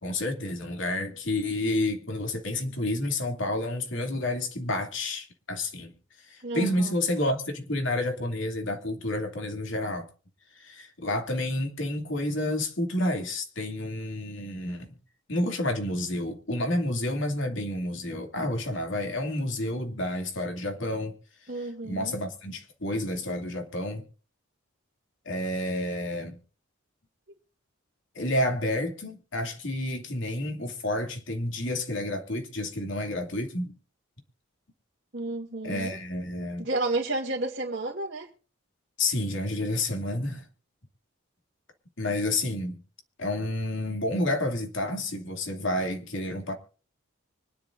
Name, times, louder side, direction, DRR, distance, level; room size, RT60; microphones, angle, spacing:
voice 1, 0.0-5.9 6.3-10.1 10.6-15.0 15.3-21.1 21.6-24.1 25.2-26.4 28.1-33.7 35.6-36.7 39.0-40.5 42.0-42.8 43.2-46.5, left 1 dB, 65° left, 2.7 m, -30 dB
voice 2, 6.4-6.9 21.5-22.2 35.1-36.0 36.6-38.3, right 2 dB, 50° right, 2.4 m, -31 dB
25.0 x 10.5 x 2.6 m
head